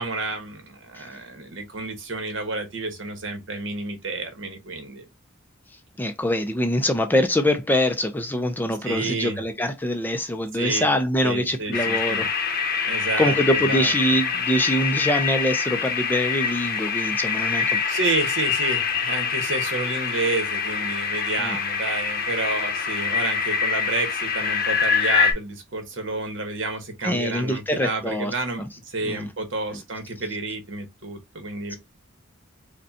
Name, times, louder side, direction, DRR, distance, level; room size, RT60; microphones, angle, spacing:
voice 1, 0.0-5.1 8.8-9.4 10.5-10.9 11.2-12.3 12.8-13.9 17.9-31.8, right 3 dB, 65° right, 1.2 m, -30 dB
voice 2, 6.0-12.3 13.2-17.8 21.4-21.6 27.0-28.3 29.0-29.3 29.7-29.8, left 1 dB, 10° left, 0.4 m, -24 dB
sound 1, 11.7-25.3, left 6 dB, 50° left, 0.8 m, -25 dB
5.2 x 2.2 x 2.7 m
head